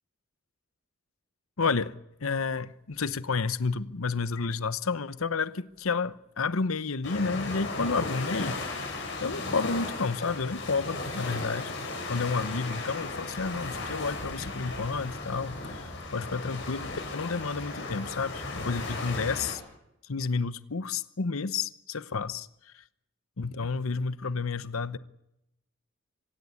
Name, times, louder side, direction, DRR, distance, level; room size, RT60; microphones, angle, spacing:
voice 1, 1.6-1.9 2.2-11.8 12.1-19.6 20.0-22.8 23.4-25.0, left 4 dB, 85° left, 0.9 m, -31 dB
sound 1, 7.0-19.5, left 3 dB, 55° left, 7.8 m, -36 dB
25.5 x 17.0 x 9.6 m
head